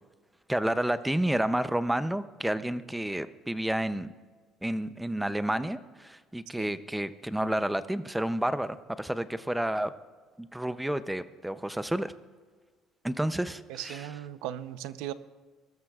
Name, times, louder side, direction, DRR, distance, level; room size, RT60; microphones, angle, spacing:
voice 1, 0.5-4.1 4.6-9.9 10.4-12.1 13.0-14.1, right 1 dB, 5° right, 13 dB, 0.5 m, -30 dB
voice 2, 13.7-15.1, right 12 dB, 90° right, 13 dB, 0.7 m, -37 dB
21.5 x 13.5 x 2.4 m, 1.5 s
cardioid pair, 135°, 0 cm